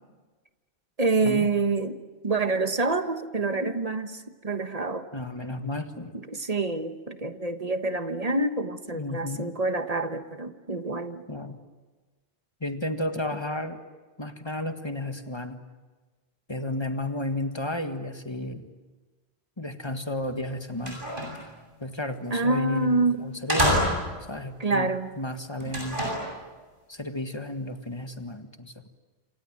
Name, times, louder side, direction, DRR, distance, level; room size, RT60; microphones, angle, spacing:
voice 1, 1.0-2.0 2.2-5.1 6.1-11.2 22.3-23.2 24.6-25.2, right 3 dB, 40° right, 9 dB, 1.3 m, -27 dB
voice 2, 5.1-6.2 8.9-9.5 11.3-11.6 12.6-13.8 14.2-15.6 16.5-18.7 19.6-21.0 21.8-23.8 24.3-24.9 25.2-26.0 26.9-28.9, left 1 dB, 25° left, 7 dB, 1.7 m, -32 dB
sound 1, 20.2-20.3 20.7-21.5 22.8-22.9 23.5-24.3 25.6-26.3, equal, 55° right, 8.1 m, -27 dB
27.5 x 26.5 x 7.6 m, 1.3 s
omnidirectional pair, 1.0 m